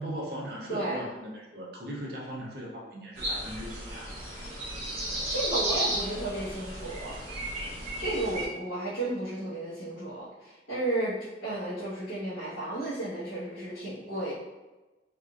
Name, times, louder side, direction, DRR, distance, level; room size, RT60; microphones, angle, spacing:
voice 1, 0.0-4.1, equal, 55° right, -3 dB, 0.7 m, -38 dB
voice 2, 0.7-1.1 5.3-7.2 8.0-14.3, right 1 dB, 80° left, -14 dB, 1.3 m, -33 dB
sound 1, 3.2-8.5, right 1 dB, 35° right, 1.0 m, -34 dB
3.6 x 2.6 x 2.4 m, 1.1 s
head